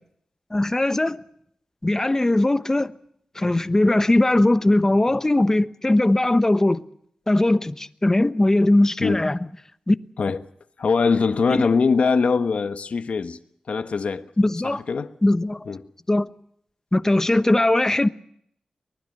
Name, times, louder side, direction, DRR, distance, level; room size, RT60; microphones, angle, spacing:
voice 1, 0.5-1.2 1.8-2.9 3.3-6.8 7.3-9.4 9.9-10.0 11.5-11.7 14.4-14.8 15.2-15.7 16.1-16.3 16.9-18.1, left 1 dB, 20° left, 1.1 m, -19 dB
voice 2, 10.8-13.4 13.7-14.3 14.6-15.1 15.7-15.8, left 5 dB, 75° left, 1.3 m, -22 dB
24.0 x 20.0 x 6.6 m
cardioid pair, 65°, 2 cm